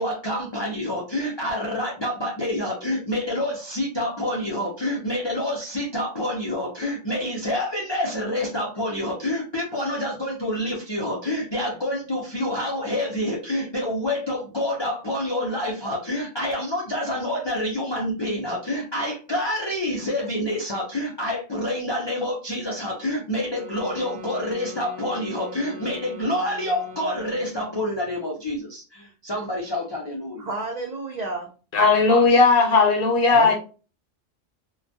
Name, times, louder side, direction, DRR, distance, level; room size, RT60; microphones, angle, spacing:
voice 1, 0.0-30.5, left 1 dB, 40° left, 0.3 m, -27 dB
sound 1, 23.5-27.7, left 2 dB, 5° left, 0.9 m, -41 dB
voice 2, 30.4-31.5 33.3-33.5, right 3 dB, 65° right, 0.4 m, -31 dB
voice 3, 31.7-33.5, left 4 dB, 60° left, 0.7 m, -17 dB
2.2 x 2.2 x 2.6 m
omnidirectional pair, 1.2 m